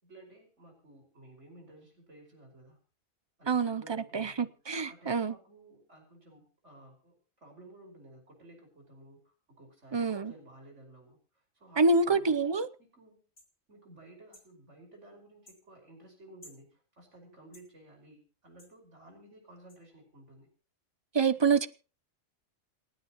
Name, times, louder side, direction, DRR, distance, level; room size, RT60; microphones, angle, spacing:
voice 1, 0.0-2.9 3.4-4.5 4.9-12.4 12.8-13.2 13.7-20.5, right 1 dB, 60° right, 5.6 m, -55 dB
voice 2, 3.5-5.3 9.9-10.3 11.8-12.7 21.1-21.7, right 4 dB, 30° right, 0.5 m, -27 dB
sound 1, 13.4-13.5 14.3-14.5 15.4-15.6 16.4-16.6 17.5-17.7 18.6-18.7 19.7-19.8, left 1 dB, 55° left, 7.9 m, -55 dB
28.0 x 9.6 x 3.0 m
omnidirectional pair, 1.3 m